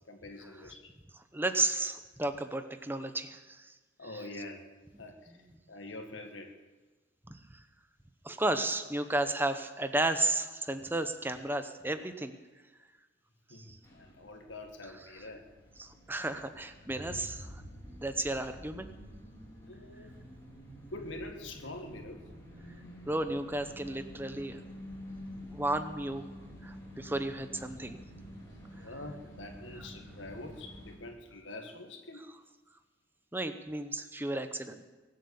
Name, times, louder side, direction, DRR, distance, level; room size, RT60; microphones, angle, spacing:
voice 1, 0.1-0.9 4.0-4.6 5.0-5.3 5.7-6.5 13.5-15.5 19.6-20.1 20.9-22.2 28.8-32.3, left 2 dB, 80° left, 3 dB, 1.8 m, -45 dB
voice 2, 1.3-3.7 4.1-4.2 4.9-5.0 7.3-7.6 8.2-12.3 13.5-13.8 15.8-17.6 17.9-18.9 23.1-24.6 25.4-26.3 26.6-28.0 33.3-34.8, right 2 dB, 10° right, 9 dB, 0.8 m, -33 dB
sound 1, 13.8-31.0, equal, 15° left, 3.6 m, -49 dB
23.0 x 7.9 x 7.2 m, 1.3 s
head